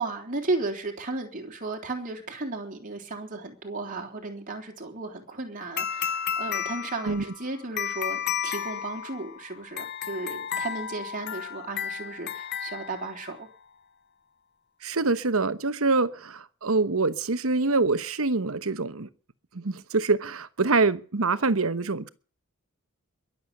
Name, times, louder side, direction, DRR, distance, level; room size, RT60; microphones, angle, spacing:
voice 1, 0.0-13.5, right 3 dB, 40° right, 3.6 m, -34 dB
sound 1, 5.8-13.5, left 8 dB, 50° left, 0.7 m, -33 dB
voice 2, 14.8-19.1 19.5-22.1, right 3 dB, 70° right, 1.1 m, -25 dB
22.0 x 7.8 x 6.7 m
head